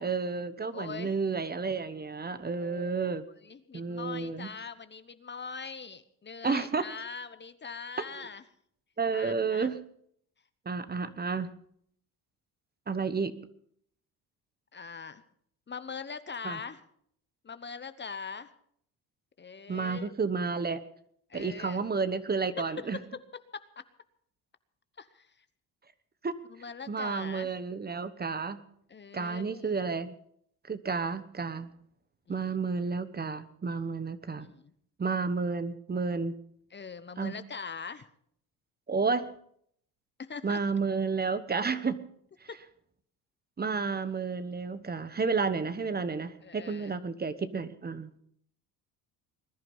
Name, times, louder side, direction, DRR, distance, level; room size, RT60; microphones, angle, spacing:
voice 1, 0.0-3.2 3.7-4.5 6.4-6.8 8.0-8.3 9.0-9.8 10.6-11.5 12.9-13.4 16.4-16.6 19.7-20.8 21.3-23.0 26.2-26.4 26.9-28.6 29.1-30.2 30.7-31.7 32.3-34.5 35.0-36.3 37.2-37.4 38.9-39.3 40.4-42.0 42.4-42.5 43.6-48.1, right 4 dB, 25° right, 13 dB, 1.1 m, -31 dB
voice 2, 0.7-1.1 2.4-3.0 3.4-8.4 9.1-9.7 14.7-15.2 15.7-16.8 17.4-18.5 19.4-20.2 21.3-21.8 22.8-22.9 23.5-23.6 25.0-25.3 26.5-27.5 28.9-29.7 32.3-32.6 34.4-34.7 36.7-38.1 40.2-40.6 42.5-42.6 46.4-46.9, left 5 dB, 30° left, 12 dB, 1.0 m, -42 dB
20.5 x 11.0 x 5.5 m, 0.66 s
supercardioid pair, 85°, 38 cm